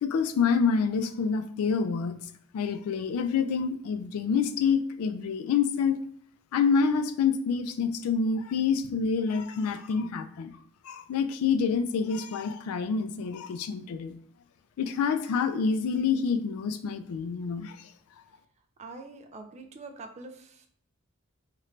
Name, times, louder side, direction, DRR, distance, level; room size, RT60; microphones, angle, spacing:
voice 1, 0.0-2.2 2.5-6.0 6.5-10.5 10.8-14.1 14.8-17.9, left 5 dB, 80° left, 11 dB, 0.3 m, -27 dB
voice 2, 18.8-20.7, right 3 dB, 30° right, 5 dB, 0.3 m, -44 dB
3.1 x 2.5 x 3.2 m, 0.62 s
head